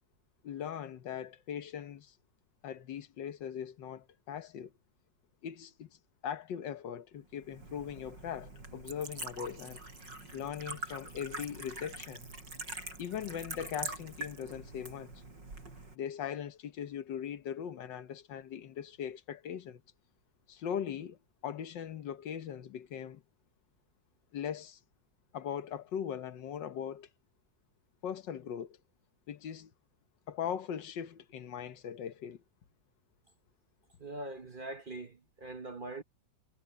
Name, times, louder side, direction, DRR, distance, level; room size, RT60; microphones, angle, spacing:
voice 1, 0.4-2.2 2.6-4.7 5.4-5.9 6.2-9.8 10.3-12.3 13.0-15.1 15.9-19.8 20.5-21.2 21.4-23.2 24.3-24.8 25.3-27.1 28.0-28.8 29.3-29.7 30.3-32.4, left 8 dB, 85° left, 1.7 m, -40 dB
Liquid, 7.4-15.9, right 2 dB, 90° right, 5.8 m, -44 dB
voice 2, 34.0-36.0, right 2 dB, 35° right, 1.0 m, -42 dB
omnidirectional pair, 1.9 m